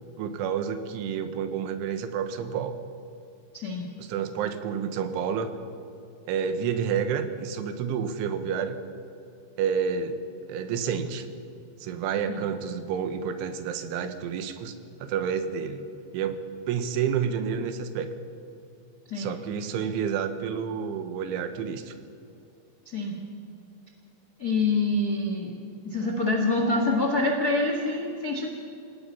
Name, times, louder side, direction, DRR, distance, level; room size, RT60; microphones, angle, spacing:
voice 1, 0.2-2.8 4.0-5.6 6.3-8.8 9.6-10.2 10.5-11.3 11.8-14.7 15.0-15.9 16.1-16.4 16.7-18.1 19.2-22.0, right 7 dB, 90° right, 9 dB, 3.7 m, -29 dB
voice 2, 3.5-3.9 12.3-12.4 19.1-19.4 22.8-23.2 24.4-25.5 25.8-28.5, left 2 dB, 75° left, 1 dB, 0.8 m, -26 dB
27.0 x 17.5 x 5.7 m, 2.6 s
omnidirectional pair, 5.3 m